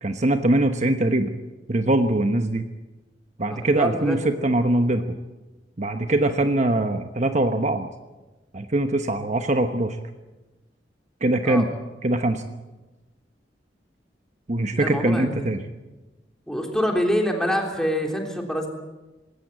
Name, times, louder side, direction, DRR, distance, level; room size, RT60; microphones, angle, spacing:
voice 1, 0.0-1.3 1.7-2.6 3.4-5.2 5.8-7.9 8.5-10.0 11.2-11.7 12.0-12.4 14.5-15.6, right 1 dB, 45° right, 7 dB, 1.1 m, -22 dB
voice 2, 3.5-4.5 11.5-11.7 14.7-15.5 16.5-18.7, equal, 5° left, 1 dB, 3.5 m, -26 dB
20.0 x 17.5 x 8.7 m, 1.1 s
head